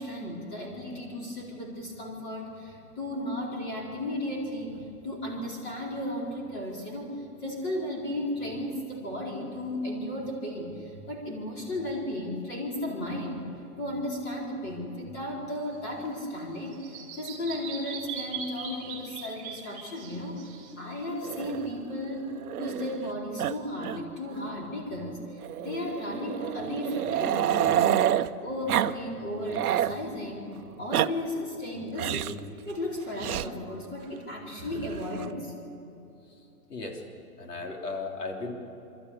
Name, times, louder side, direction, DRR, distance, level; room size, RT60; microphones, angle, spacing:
voice 1, 0.0-13.4 13.8-16.8 17.2-20.4 20.8-22.3 22.6-28.1 28.4-30.5 30.8-35.5, left 1 dB, 25° left, -2 dB, 4.3 m, -34 dB
Bird vocalization bird call bird song, 15.7-21.6, right 6 dB, 15° right, 3.2 m, -41 dB
Growling, 21.2-23.1 23.4-23.5 23.8-24.0 24.3-24.4 25.4-28.3 28.7-28.9 29.3-30.0 30.7-31.1 32.0-32.4 33.2-33.5 34.6-35.3, right 11 dB, 70° right, 0.8 m, -28 dB
voice 2, 37.4-38.5, left 3 dB, 90° left, 1 dB, 3.7 m, -35 dB
24.0 x 13.5 x 8.4 m, 2.8 s
hypercardioid pair, 160°, 46 cm